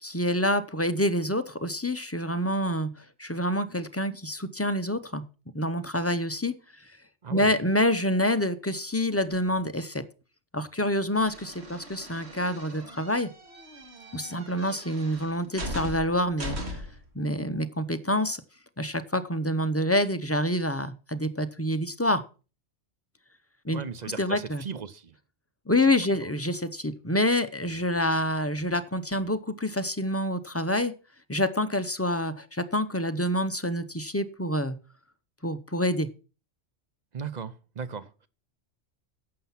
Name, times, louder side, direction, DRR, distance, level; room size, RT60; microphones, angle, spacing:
voice 1, 0.0-5.2 5.5-6.5 7.3-10.0 10.5-13.3 14.1-16.8 17.1-18.4 18.8-22.2 23.6-23.8 24.2-24.6 25.7-30.9 31.3-34.8 35.4-36.1, left 1 dB, 15° left, 0.5 m, -27 dB
sound 1, 11.1-17.1, equal, 60° right, 2.4 m, -39 dB
voice 2, 23.7-25.1 26.0-26.3 37.1-38.3, right 6 dB, 45° right, 0.7 m, -37 dB
11.5 x 7.5 x 5.8 m
omnidirectional pair, 1.2 m